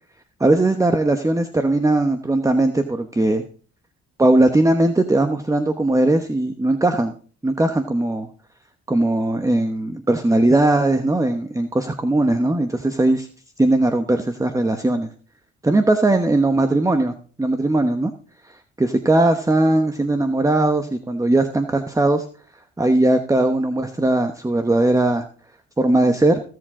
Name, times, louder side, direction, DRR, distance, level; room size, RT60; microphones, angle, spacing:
voice 1, 0.4-3.4 4.2-7.1 7.4-8.3 8.9-13.3 13.6-15.1 15.6-18.1 18.4-22.2 22.8-25.2 25.8-26.4, right 2 dB, 10° right, 7 dB, 1.0 m, -19 dB
16.0 x 7.6 x 3.7 m, 0.41 s
cardioid pair, 90°, 30 cm